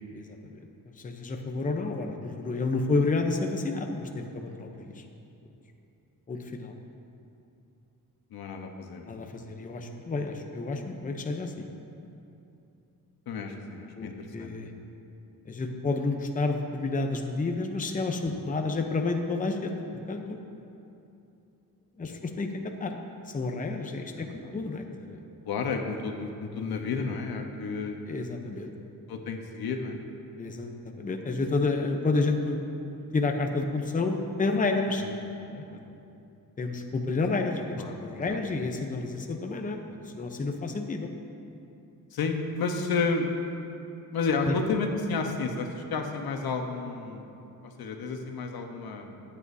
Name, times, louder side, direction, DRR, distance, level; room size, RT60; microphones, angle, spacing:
voice 1, 1.0-5.0 6.3-6.7 9.1-11.7 14.0-14.7 15.4-19.7 20.1-20.4 22.0-23.0 23.3-25.2 28.1-28.9 30.4-32.6 33.1-35.0 35.5-35.6 36.6-37.7 38.0-41.1 44.4-44.6, left 3 dB, 20° left, 3 dB, 0.8 m, -30 dB
voice 2, 8.3-9.2 13.3-14.7 22.1-22.2 24.2-24.5 25.5-28.0 29.1-30.0 35.0-35.1 37.8-37.9 38.3-38.4 42.1-43.3 44.1-47.3 47.6-49.2, left 4 dB, 80° left, 4 dB, 1.2 m, -31 dB
23.5 x 8.6 x 2.8 m, 2.7 s
wide cardioid pair, 135°, 37 cm